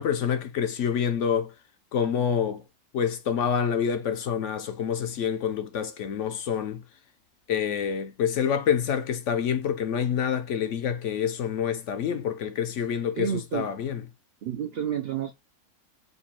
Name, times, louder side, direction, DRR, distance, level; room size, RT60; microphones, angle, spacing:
voice 1, 0.0-1.5 1.9-2.6 2.9-6.8 7.5-14.0, left 8 dB, 65° left, 0.9 m, -27 dB
voice 2, 13.1-13.7 14.4-15.3, right 9 dB, 65° right, 0.6 m, -30 dB
5.2 x 2.4 x 4.2 m
omnidirectional pair, 1.5 m